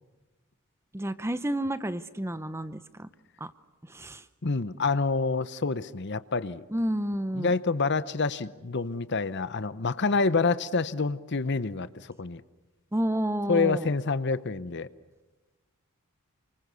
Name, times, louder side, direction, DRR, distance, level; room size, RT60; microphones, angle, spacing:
voice 1, 0.9-3.1 3.9-4.2 6.7-7.6 12.9-13.9, right 1 dB, 10° right, 13 dB, 0.8 m, -30 dB
voice 2, 4.4-6.6 7.3-11.9 12.2-12.4 13.5-14.9, left 4 dB, 50° left, 15 dB, 0.8 m, -27 dB
29.0 x 25.5 x 6.9 m, 1.2 s
head